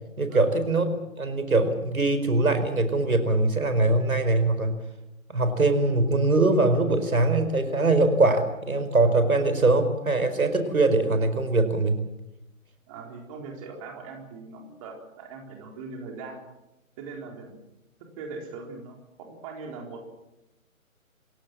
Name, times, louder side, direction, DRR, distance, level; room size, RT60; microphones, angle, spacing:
voice 1, 0.2-0.9 1.2-4.7 5.3-12.0, right 2 dB, 80° right, 9 dB, 4.9 m, -22 dB
voice 2, 12.9-16.4 17.0-17.5 18.2-20.1, right 4 dB, 25° right, 1 dB, 4.1 m, -40 dB
27.5 x 16.5 x 7.6 m, 0.92 s
figure-of-eight pair, 150°, 42 cm